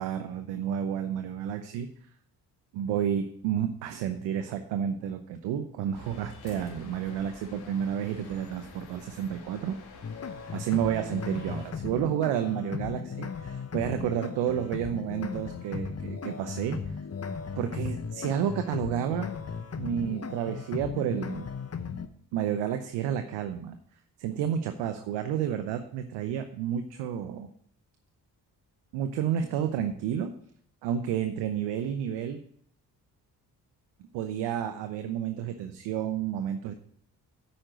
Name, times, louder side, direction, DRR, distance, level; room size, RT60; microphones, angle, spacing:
voice 1, 0.0-1.9 2.7-9.8 10.5-16.8 17.5-19.3 19.8-21.5 22.3-23.8 24.2-27.5 28.9-30.3 30.8-32.4 34.1-36.7, right 9 dB, 90° right, 7 dB, 0.8 m, -30 dB
sound 1, 5.9-11.7, left 4 dB, 60° left, 2.1 m, -49 dB
sound 2, 10.0-22.1, left 6 dB, 35° left, 0.9 m, -36 dB
8.7 x 5.2 x 7.8 m, 0.65 s
supercardioid pair, 60°, 41 cm